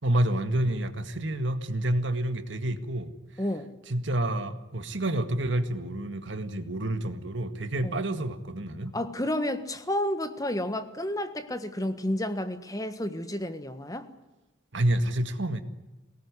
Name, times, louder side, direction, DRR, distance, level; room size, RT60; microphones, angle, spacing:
voice 1, 0.0-3.1 3.9-8.9 14.7-15.6, right 1 dB, 70° right, 1.9 m, -28 dB
voice 2, 3.4-3.7 7.8-8.0 8.9-14.1, left 1 dB, 20° left, 1.5 m, -31 dB
23.0 x 18.5 x 9.8 m
head